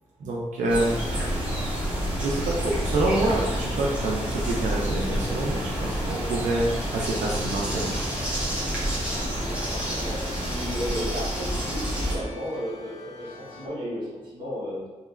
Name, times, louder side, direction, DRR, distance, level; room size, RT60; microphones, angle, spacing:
voice 1, 0.2-1.0 2.2-7.9, right 2 dB, 90° right, -3 dB, 0.5 m, -27 dB
sound 1, 0.7-12.2, right 1 dB, 10° right, 0.8 m, -29 dB
Northbound Train a, 1.0-11.0, equal, 10° left, 1.0 m, -37 dB
sound 2, 2.9-13.7, left 3 dB, 65° left, 0.6 m, -46 dB
voice 2, 9.2-14.8, equal, 40° right, -8 dB, 1.1 m, -34 dB
3.2 x 2.9 x 2.4 m, 1.3 s
wide cardioid pair, 175°, 12 cm